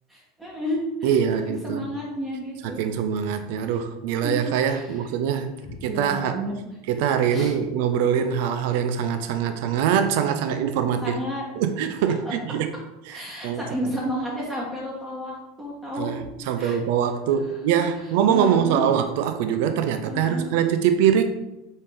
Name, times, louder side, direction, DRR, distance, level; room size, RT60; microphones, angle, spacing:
voice 1, 0.1-1.2 1.5-2.8 3.7-3.8 4.2-5.0 5.8-6.6 7.3-7.5 11.0-11.4 13.1-16.1 16.6-16.8 18.3-18.9 20.0-20.5, equal, 15° right, -6 dB, 1.2 m, -31 dB
voice 2, 1.0-1.8 2.6-5.5 5.8-6.4 6.9-11.2 11.6-12.7 13.1-13.9 16.0-16.2 16.5-21.2, right 8 dB, 65° right, 9 dB, 0.4 m, -23 dB
4.2 x 3.5 x 3.5 m, 0.94 s
hypercardioid pair, 90°, 0 cm